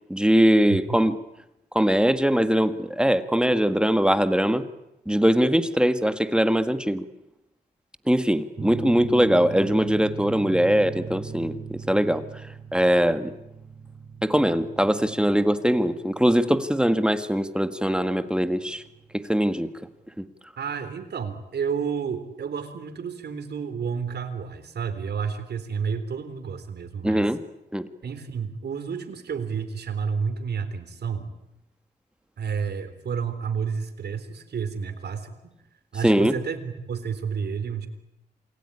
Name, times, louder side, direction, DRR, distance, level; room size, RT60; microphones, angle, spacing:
voice 1, 0.1-1.2 1.7-4.6 5.1-7.0 8.1-12.2 12.7-13.3 14.2-18.8 19.1-19.7 20.2-20.3 27.0-27.4 27.7-27.9 36.0-36.4, equal, 5° right, 11 dB, 1.7 m, -21 dB
sound 1, 8.6-19.8, right 5 dB, 35° right, 1.7 m, -39 dB
voice 2, 20.6-27.3 28.0-31.3 32.4-35.5 35.9-37.9, right 6 dB, 75° right, 10 dB, 3.7 m, -30 dB
28.0 x 21.0 x 9.9 m, 0.87 s
wide cardioid pair, 95°, 17 cm